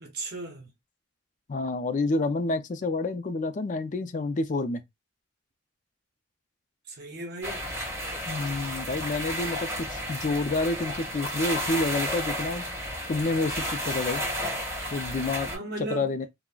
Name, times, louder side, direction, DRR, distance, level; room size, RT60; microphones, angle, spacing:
voice 1, 0.0-0.7 6.9-7.6 15.5-16.1, right 2 dB, 60° right, 0.6 m, -36 dB
voice 2, 1.5-4.8 8.3-12.6 13.1-14.2 14.9-15.5 15.9-16.3, left 3 dB, 45° left, 0.4 m, -29 dB
sound 1, 7.4-15.6, equal, 15° right, 1.6 m, -32 dB
3.6 x 2.1 x 2.3 m
head